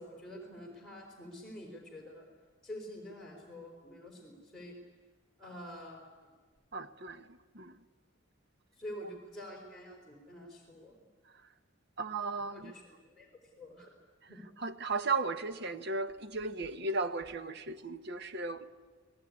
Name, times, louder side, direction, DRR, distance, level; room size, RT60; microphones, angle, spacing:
voice 1, 0.0-2.3 2.6-4.8 5.4-6.1 8.8-10.9 12.5-13.3 13.6-13.9 14.3-14.4, equal, ahead, 4.2 m, -47 dB
voice 2, 6.7-7.3 7.5-7.7 12.0-12.7 14.6-18.6, right 3 dB, 60° right, 1.1 m, -35 dB
28.0 x 19.0 x 9.6 m
head